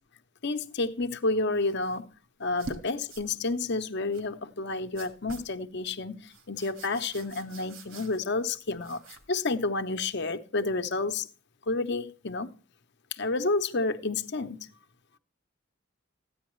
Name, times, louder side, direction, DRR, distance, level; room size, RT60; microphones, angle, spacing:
voice 1, 0.4-2.0 2.4-9.0 9.3-11.3 11.7-12.5 13.1-14.7, left 3 dB, 55° left, 0.8 m, -30 dB
sound 1, 1.6-2.0 2.4-2.8 3.1-3.3 4.1-4.3 4.9-5.5 6.2-8.4 8.8-9.3, right 3 dB, 75° right, 1.8 m, -46 dB
14.5 x 9.5 x 3.1 m
head